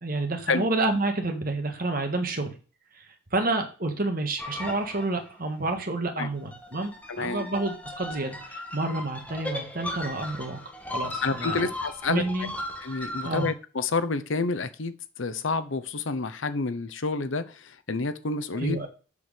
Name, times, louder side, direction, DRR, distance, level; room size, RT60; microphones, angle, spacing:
voice 1, 0.0-2.6 2.9-10.6 10.9-11.7 12.1-12.5 13.2-13.5 18.5-18.9, right 2 dB, 45° right, 5 dB, 1.6 m, -29 dB
sound 1, 4.4-5.4 6.4-13.5, left 1 dB, 5° left, 1.6 m, -37 dB
voice 2, 7.1-7.5 11.2-12.2 12.8-18.8, left 3 dB, 70° left, 12 dB, 0.8 m, -29 dB
7.0 x 6.4 x 5.1 m, 0.36 s
head